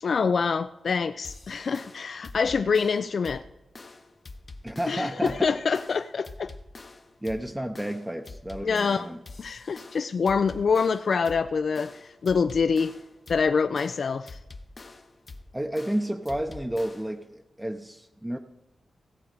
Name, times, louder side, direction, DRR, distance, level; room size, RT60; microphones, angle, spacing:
voice 1, 0.0-3.4 4.9-6.5 8.6-9.1 9.4-12.9 13.3-14.4, left 5 dB, 60° left, 10 dB, 0.4 m, -25 dB
sound 1, 1.2-17.2, left 3 dB, 35° left, 0.8 m, -46 dB
voice 2, 4.6-5.5 7.2-9.2 15.5-18.4, right 1 dB, 10° right, 5 dB, 0.7 m, -31 dB
16.5 x 7.2 x 5.1 m, 0.96 s
wide cardioid pair, 105°, 0 cm